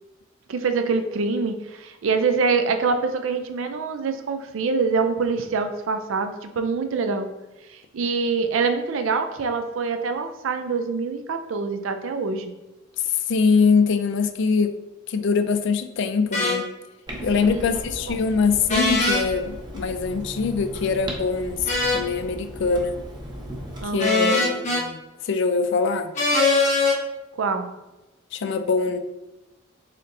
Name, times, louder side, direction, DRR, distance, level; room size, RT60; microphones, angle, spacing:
voice 1, 0.5-7.3 7.7-12.5 17.3-17.8 18.0-18.2 23.8-24.4 27.4-27.7, right 4 dB, 75° right, 8 dB, 0.4 m, -25 dB
voice 2, 13.3-14.8 15.1-16.7 17.2-22.9 23.9-25.0 25.2-26.1 28.3-29.0, left 5 dB, 60° left, 9 dB, 0.4 m, -23 dB
sound 1, 16.3-16.6 18.7-19.2 21.7-22.1 24.0-24.8 26.1-27.0, left 2 dB, 35° left, 0.8 m, -21 dB
Clock, 17.1-23.8, equal, 20° right, 0.7 m, -36 dB
4.3 x 3.7 x 2.6 m, 1.0 s
head